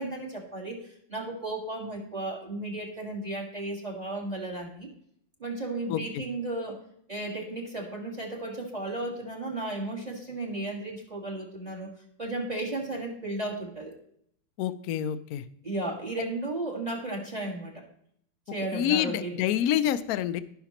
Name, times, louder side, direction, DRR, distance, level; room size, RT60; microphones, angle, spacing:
voice 1, 0.0-4.9 5.4-6.8 7.1-11.9 12.2-13.9 15.6-17.9 18.5-19.4, right 2 dB, 20° right, 1 dB, 1.7 m, -34 dB
voice 2, 5.9-6.2 14.6-15.4 18.7-20.4, left 10 dB, 80° left, 13 dB, 0.8 m, -27 dB
16.0 x 5.8 x 2.9 m, 0.68 s
omnidirectional pair, 2.1 m